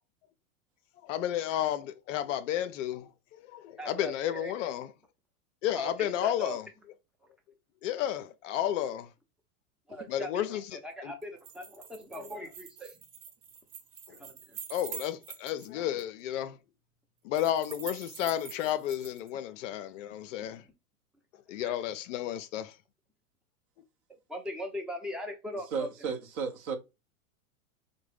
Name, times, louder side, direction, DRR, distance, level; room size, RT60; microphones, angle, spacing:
voice 1, 1.0-3.1 3.4-4.9 5.6-6.7 7.8-9.1 10.1-10.7 11.0-11.1 14.1-14.2 14.7-16.6 17.2-20.6 21.5-22.8, left 11 dB, 60° left, 0.5 m, -32 dB
voice 2, 3.8-4.5 5.7-6.6 9.9-12.9 14.2-14.6 21.6-21.8 24.3-25.9, equal, ahead, 0.5 m, -40 dB
sound 1, 11.2-15.7 16.0-16.1 17.3-19.3, right 7 dB, 85° right, 1.1 m, -45 dB
voice 3, 25.7-26.8, right 5 dB, 40° right, 0.7 m, -33 dB
3.6 x 2.1 x 3.2 m
hypercardioid pair, 105°, 42 cm